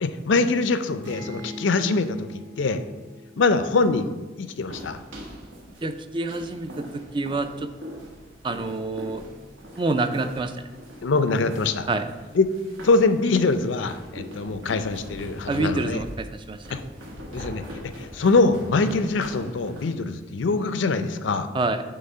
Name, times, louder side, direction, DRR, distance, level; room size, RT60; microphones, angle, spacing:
voice 1, 0.0-2.8 3.4-5.0 11.0-11.9 12.3-12.5 12.8-16.0 16.7-16.8 17.3-17.6 18.0-21.5, left 3 dB, 75° left, 11 dB, 0.5 m, -23 dB
sound 1, 1.0-4.8, equal, 45° right, 1.8 m, -42 dB
sound 2, 4.6-19.9, equal, 85° right, 1.2 m, -41 dB
voice 2, 5.8-7.7 8.4-9.2 9.8-10.5 11.9-12.1 15.5-16.6 21.5-21.8, right 3 dB, 25° right, 9 dB, 0.3 m, -27 dB
7.8 x 3.3 x 5.4 m, 1.2 s
head